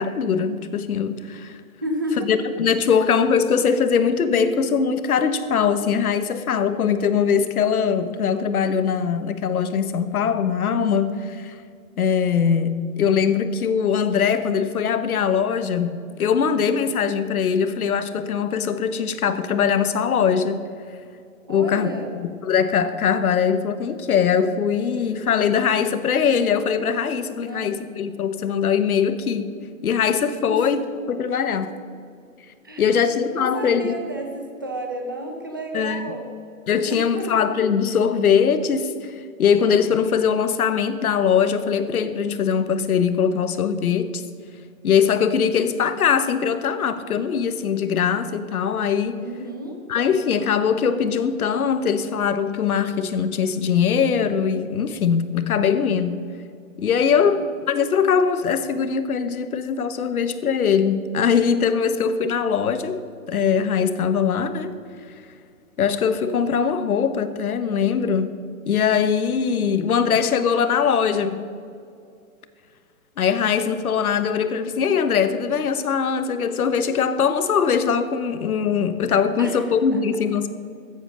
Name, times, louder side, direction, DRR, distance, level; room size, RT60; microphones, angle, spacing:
voice 1, 0.0-1.6 2.2-11.6 12.0-20.6 21.5-21.9 22.1-29.5 29.8-30.8 31.1-31.7 32.8-33.9 35.7-36.1 36.7-44.2 44.8-49.2 49.9-56.2 56.8-63.0 63.3-64.7 65.8-68.3 68.7-71.4 73.2-80.5, left 7 dB, 85° left, 11 dB, 1.2 m, -21 dB
voice 2, 1.8-2.3 2.9-3.0 21.5-22.1 27.4-27.7 30.5-30.6 32.6-36.3 36.9-37.5 49.2-49.8 57.2-57.4 79.4-79.6 79.9-80.0, right 1 dB, 15° right, 2 dB, 0.5 m, -32 dB
13.5 x 8.0 x 6.4 m, 2.3 s
hypercardioid pair, 180°, 43 cm